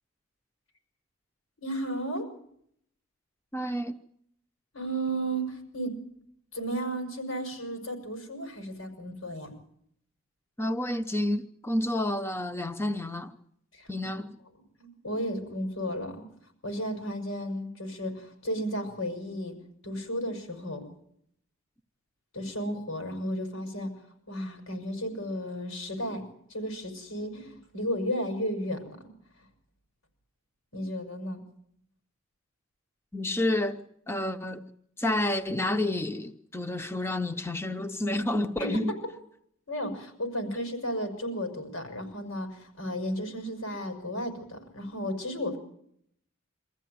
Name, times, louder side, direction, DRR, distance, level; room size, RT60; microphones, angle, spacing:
voice 1, 1.6-2.3 4.7-5.9 6.5-9.5 13.7-14.2 14.8-16.3 16.6-19.5 19.8-20.8 22.3-23.9 24.3-26.2 26.5-29.0 30.7-31.4 38.6-38.8 39.7-45.6, equal, 85° left, 6.2 m, -33 dB
voice 2, 3.5-4.0 10.6-13.3 13.9-14.4 33.1-34.6 35.0-38.9, left 1 dB, 10° left, 0.8 m, -29 dB
24.5 x 14.5 x 9.3 m
head